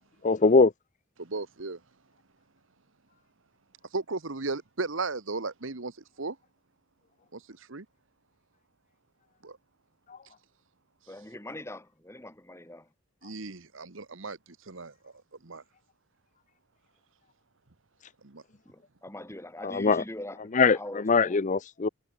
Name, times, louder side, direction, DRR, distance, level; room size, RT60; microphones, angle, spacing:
voice 1, 0.2-0.7 10.1-10.2 19.6-20.0 20.5-21.9, left 4 dB, 40° left, 0.6 m, -22 dB
voice 2, 1.3-1.8 3.9-5.9 6.2-6.3 7.7-7.8 9.4-9.5 13.2-14.4 14.7-14.9 15.5-15.6 18.3-18.4, right 3 dB, 70° right, 1.4 m, -34 dB
voice 3, 11.1-12.9 18.7-21.4, left 1 dB, 15° left, 4.3 m, -42 dB
head